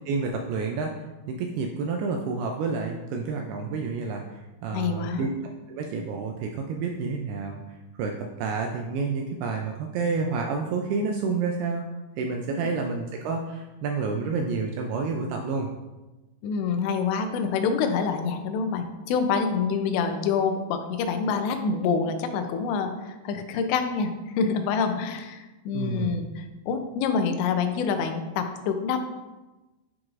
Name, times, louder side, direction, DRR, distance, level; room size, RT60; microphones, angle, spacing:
voice 1, 0.1-5.3 5.7-7.6 8.0-11.8 12.2-15.7 25.7-26.1, right 4 dB, 85° right, 2 dB, 2.3 m, -29 dB
voice 2, 4.7-5.3 16.4-29.0, left 5 dB, 85° left, 7 dB, 2.9 m, -26 dB
10.0 x 4.7 x 2.5 m, 1.1 s
omnidirectional pair, 5.0 m